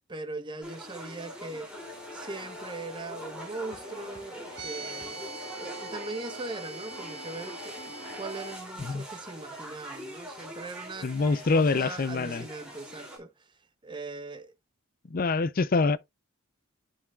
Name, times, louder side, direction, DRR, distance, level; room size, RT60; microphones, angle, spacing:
voice 1, 0.1-1.8 2.1-11.1 11.5-13.5 13.8-14.6, right 3 dB, 20° right, 0.7 m, -40 dB
sound 1, 0.6-13.2, equal, 5° right, 2.7 m, -44 dB
sound 2, 1.7-8.6, left 1 dB, 20° left, 1.8 m, -46 dB
sound 3, 4.5-8.6, right 3 dB, 50° right, 1.4 m, -43 dB
voice 2, 11.0-12.5 15.1-16.0, left 3 dB, 40° left, 0.5 m, -25 dB
10.0 x 5.8 x 2.3 m
head